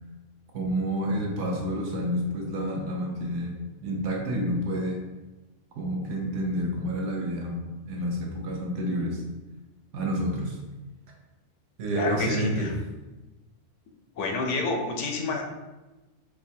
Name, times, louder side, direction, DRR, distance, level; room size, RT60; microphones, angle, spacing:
voice 1, 0.5-3.6 3.8-5.0 5.7-9.2 9.9-10.6 11.8-12.7, equal, 70° right, -1 dB, 1.0 m, -29 dB
voice 2, 11.9-12.7 14.2-15.4, left 3 dB, 75° left, 2 dB, 0.9 m, -28 dB
4.2 x 2.1 x 2.7 m, 1.1 s
omnidirectional pair, 1.3 m